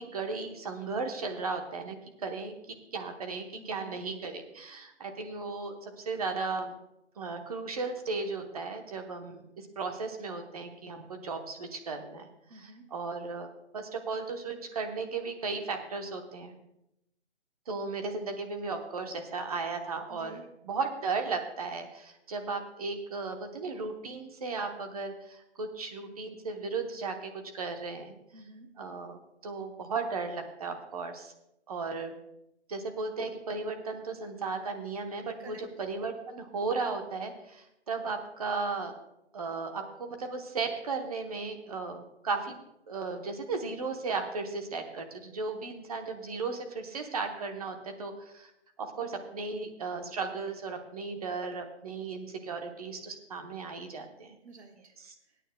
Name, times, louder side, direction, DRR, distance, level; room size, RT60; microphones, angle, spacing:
voice 1, 0.0-6.7 7.2-13.5 13.7-16.5 17.7-28.1 28.8-31.3 31.7-32.1 32.7-39.0 39.3-42.5 42.9-48.5 48.8-54.4 55.0-55.1, right 4 dB, 35° right, 5 dB, 0.9 m, -36 dB
voice 2, 3.5-4.0 12.5-12.9 20.1-20.4 28.3-28.7 35.4-35.6 54.4-54.9 55.3-55.5, right 1 dB, 70° right, 3 dB, 1.5 m, -50 dB
20.5 x 9.1 x 2.2 m, 0.83 s
hypercardioid pair, 165°, 34 cm